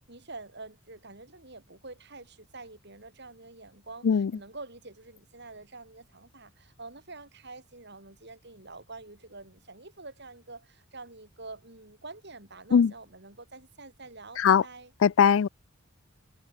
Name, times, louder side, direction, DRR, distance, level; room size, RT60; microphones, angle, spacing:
voice 1, 0.0-14.9, right 3 dB, 55° right, 6.7 m, -47 dB
voice 2, 15.0-15.5, left 7 dB, 70° left, 0.4 m, -20 dB
head